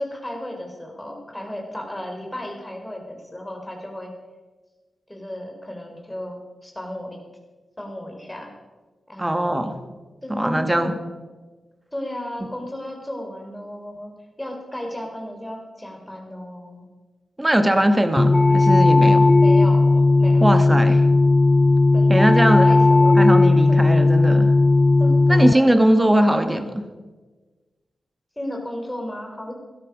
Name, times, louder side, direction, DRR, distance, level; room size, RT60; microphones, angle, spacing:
voice 1, 0.0-4.1 5.1-7.2 7.8-8.5 9.1-9.6 10.2-11.0 11.9-14.1 14.4-16.9 19.4-20.5 21.9-23.4 23.7-24.1 25.0-26.7 28.4-29.5, left 1 dB, 15° left, 2 dB, 4.6 m, -34 dB
voice 2, 9.2-9.7 10.3-10.9 17.4-19.3 20.4-21.0 22.1-22.7 23.2-24.5 25.3-26.7, right 1 dB, 15° right, 8 dB, 1.9 m, -20 dB
sound 1, 18.2-25.5, left 2 dB, 30° left, 0.5 m, -15 dB
17.0 x 12.5 x 5.5 m, 1.3 s
cardioid pair, 45°, 0 cm